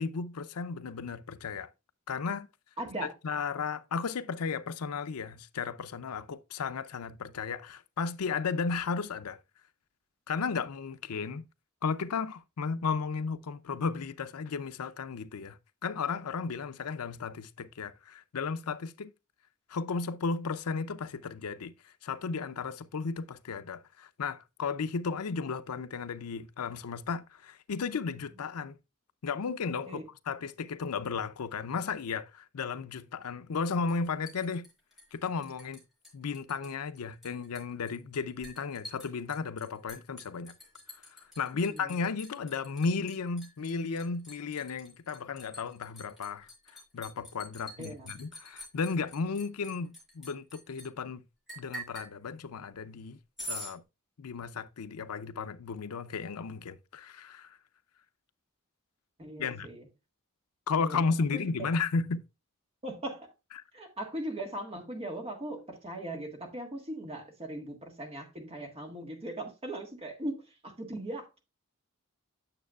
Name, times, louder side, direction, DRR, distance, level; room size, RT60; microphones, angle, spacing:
voice 1, 0.0-1.7 2.1-2.5 3.0-9.4 10.3-11.4 11.8-19.1 19.7-28.8 29.2-34.7 35.1-35.8 36.1-40.5 41.4-51.2 51.6-53.2 53.5-53.8 54.2-57.6 59.4-59.7 60.7-62.2, left 5 dB, 80° left, 0.5 m, -34 dB
voice 2, 2.8-3.2 29.9-30.0 41.5-42.0 47.8-48.1 59.2-59.9 60.8-61.0 61.3-61.5 62.8-63.3 63.7-71.4, right 1 dB, 25° right, 1.5 m, -39 dB
Liquid, 33.9-35.8 36.0-36.7 37.0-50.9 51.5-52.1 53.4-53.7, equal, ahead, 4.9 m, -46 dB
8.9 x 7.1 x 2.3 m
head